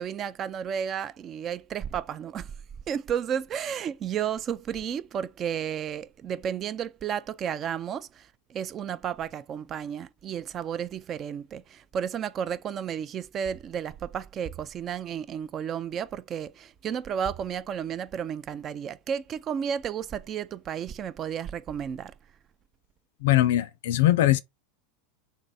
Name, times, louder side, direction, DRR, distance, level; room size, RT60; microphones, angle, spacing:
voice 1, 0.0-2.5 2.9-22.1, right 8 dB, 35° right, 0.4 m, -32 dB
voice 2, 23.2-24.4, left 15 dB, 70° left, 0.3 m, -21 dB
3.3 x 2.6 x 4.0 m
hypercardioid pair, 95°, 0 cm